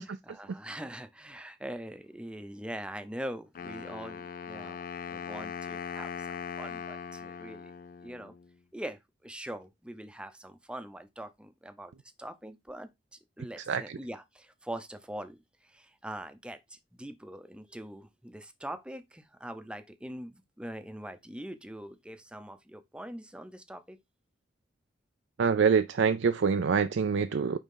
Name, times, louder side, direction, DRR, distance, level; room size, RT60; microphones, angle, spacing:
voice 1, 0.0-7.7 8.0-8.3 8.7-11.9 12.2-12.9 13.4-24.0, right 1 dB, 5° right, 0.6 m, -43 dB
Wind instrument woodwind instrument, 3.5-8.5, left 6 dB, 45° left, 0.4 m, -40 dB
voice 2, 25.4-27.6, right 6 dB, 75° right, 0.4 m, -25 dB
9.2 x 3.6 x 3.7 m
head